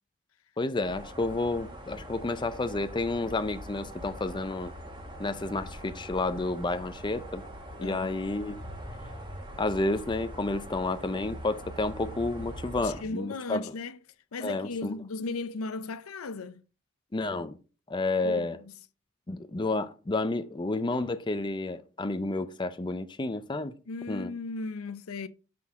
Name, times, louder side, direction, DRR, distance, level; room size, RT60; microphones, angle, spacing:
voice 1, 0.6-4.7 5.2-7.4 7.8-8.6 9.6-13.6 14.4-15.0 17.1-17.6 17.9-18.6 19.3-23.7 24.1-24.3, left 2 dB, 20° left, 0.5 m, -30 dB
sound 1, 0.8-13.0, equal, 25° right, 1.5 m, -43 dB
voice 2, 7.8-8.1 12.8-14.0 14.3-16.6 18.2-18.7 23.9-25.3, left 3 dB, 80° left, 0.6 m, -36 dB
6.1 x 5.9 x 4.7 m
head